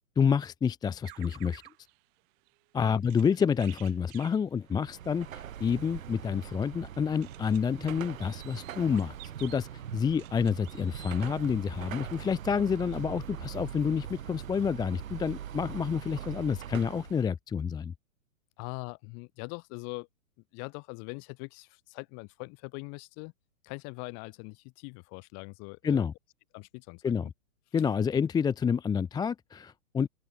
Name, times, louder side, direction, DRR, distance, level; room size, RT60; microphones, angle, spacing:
voice 1, 0.2-1.6 2.7-17.9 25.8-26.1 27.0-27.3 27.7-30.1, left 6 dB, 10° left, 0.8 m, -29 dB
sound 1, 1.0-12.7 13.2-13.3 13.5-14.0, right 25 dB, 40° right, 4.1 m, -55 dB
Car passing by / Traffic noise roadway noise / Engine, 4.7-17.3, right 10 dB, 65° right, 7.1 m, -42 dB
voice 2, 18.6-20.1 20.5-23.3 23.6-26.0 26.5-27.3, left 37 dB, 35° left, 3.5 m, -42 dB
open air
hypercardioid pair, 120°, 43 cm